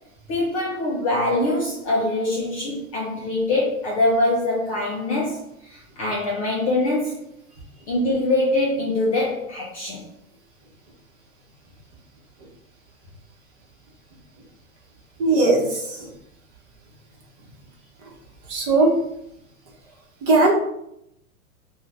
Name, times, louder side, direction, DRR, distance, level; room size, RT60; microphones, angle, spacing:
voice 1, 0.3-7.2 7.9-10.1, left 2 dB, 25° left, -5 dB, 0.3 m, -23 dB
voice 2, 7.5-7.9 15.2-16.1 18.0-18.1 18.4-19.0 20.2-20.5, right 2 dB, 35° right, -2 dB, 0.9 m, -20 dB
2.5 x 2.3 x 3.3 m, 0.78 s
hypercardioid pair, 130°, 42 cm